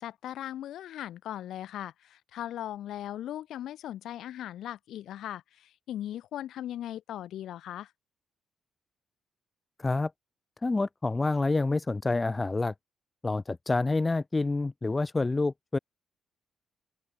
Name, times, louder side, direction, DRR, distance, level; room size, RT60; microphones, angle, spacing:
voice 1, 0.0-7.9, left 12 dB, 75° left, 1.6 m, -38 dB
voice 2, 9.8-10.1 10.6-12.7 13.2-15.8, left 3 dB, 20° left, 0.6 m, -28 dB
open air
cardioid pair, 90°, 0 cm